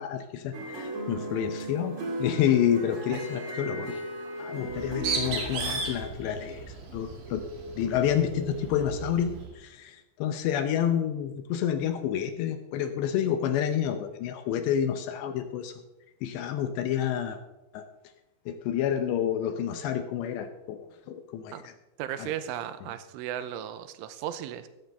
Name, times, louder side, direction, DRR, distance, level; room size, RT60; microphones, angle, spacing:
voice 1, 0.0-4.0 4.4-7.4 7.8-15.7 16.2-17.4 17.7-17.9 18.5-20.8 21.1-21.7 22.2-22.3, left 9 dB, 75° left, 8 dB, 2.7 m, -29 dB
sound 1, 0.5-6.0, right 1 dB, 55° right, 0.8 m, -36 dB
Bird, 4.6-9.5, right 4 dB, 75° right, 4.7 m, -36 dB
voice 2, 22.0-24.7, right 11 dB, 90° right, 11 dB, 3.2 m, -36 dB
15.5 x 13.0 x 3.5 m, 1.0 s
omnidirectional pair, 5.5 m